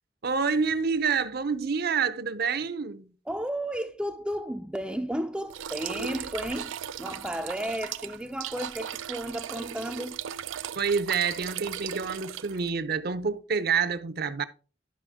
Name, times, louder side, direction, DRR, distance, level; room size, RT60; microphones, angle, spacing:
voice 1, 0.2-3.1 10.8-14.4, right 5 dB, 55° right, 0.7 m, -27 dB
voice 2, 3.3-6.7 7.0-10.2, equal, 5° right, 0.4 m, -33 dB
sound 1, 5.5-12.7, right 9 dB, 90° right, 0.4 m, -37 dB
11.5 x 5.9 x 3.6 m
head